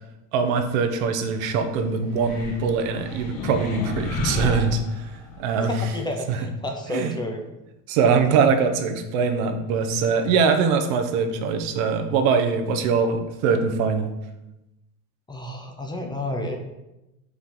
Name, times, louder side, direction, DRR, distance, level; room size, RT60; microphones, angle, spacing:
voice 1, 0.3-5.1 5.4-5.9 6.3-6.5 6.9-7.2 7.9-14.1, right 5 dB, 85° right, 7 dB, 0.9 m, -22 dB
sound 1, 2.1-5.5, left 3 dB, 55° left, 1.5 m, -31 dB
voice 2, 5.6-7.4 15.3-16.6, left 1 dB, 10° left, 3 dB, 0.6 m, -30 dB
5.5 x 4.7 x 3.8 m, 0.95 s
cardioid pair, 135°, 39 cm